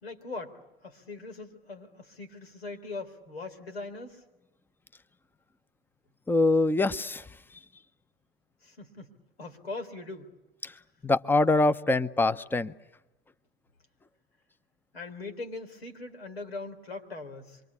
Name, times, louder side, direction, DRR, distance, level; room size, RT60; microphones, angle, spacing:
voice 1, 0.0-4.2 8.6-9.1 9.4-10.3 14.9-17.6, left 3 dB, 90° left, 3.8 m, -41 dB
voice 2, 6.3-7.2 10.6-10.7 11.0-12.7, left 2 dB, 5° left, 0.9 m, -24 dB
27.0 x 24.0 x 8.4 m
hypercardioid pair, 90°, 30 cm